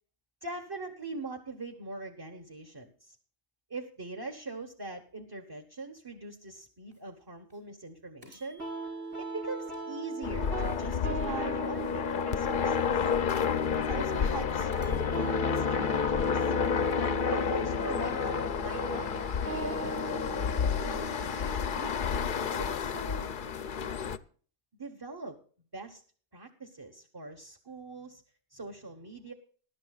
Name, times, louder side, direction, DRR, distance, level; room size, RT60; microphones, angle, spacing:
voice 1, 0.4-3.2 3.7-8.6 9.2-13.1 13.7-16.5 17.3-20.0 20.7-23.3 24.8-25.4 25.7-26.0 26.3-28.2 28.5-29.3, right 3 dB, 20° right, 2 dB, 1.1 m, -42 dB
sound 1, 6.9-7.0 7.5-7.6 8.2-10.6 11.1-13.5 14.0-14.1 14.7-17.1, equal, 40° right, 5.6 m, -62 dB
sound 2, 8.6-23.5, right 3 dB, 75° right, 4.2 m, -40 dB
sound 3, 10.2-24.2, left 6 dB, 50° left, 0.7 m, -30 dB
20.5 x 11.5 x 2.4 m, 0.43 s
omnidirectional pair, 1.3 m